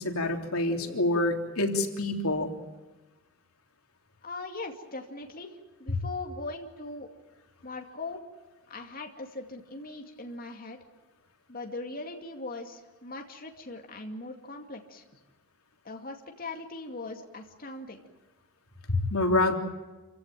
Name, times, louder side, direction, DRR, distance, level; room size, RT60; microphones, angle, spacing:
voice 1, 0.0-2.5 18.9-19.5, left 2 dB, 90° left, 4 dB, 3.3 m, -26 dB
voice 2, 4.2-7.1 7.6-8.2 8.7-10.8 11.5-15.0 15.8-18.0, left 2 dB, 45° left, 3 dB, 2.4 m, -40 dB
28.0 x 16.5 x 9.1 m, 1.2 s
head